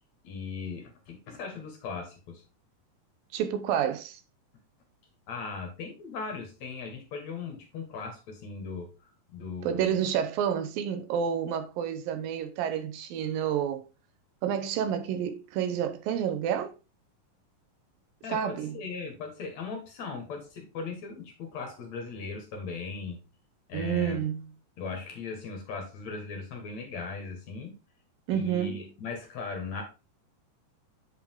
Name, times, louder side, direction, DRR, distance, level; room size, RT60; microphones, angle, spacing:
voice 1, 0.2-2.4 5.3-8.9 9.3-10.0 18.2-23.2 23.7-24.2 24.8-27.8 28.3-29.8, left 4 dB, 55° left, 2.5 m, -38 dB
voice 2, 3.3-4.2 9.6-13.8 14.4-16.7 18.3-18.8 23.7-24.5 28.3-28.9, right 9 dB, 80° right, 2.6 m, -29 dB
8.1 x 5.2 x 3.6 m
omnidirectional pair, 4.1 m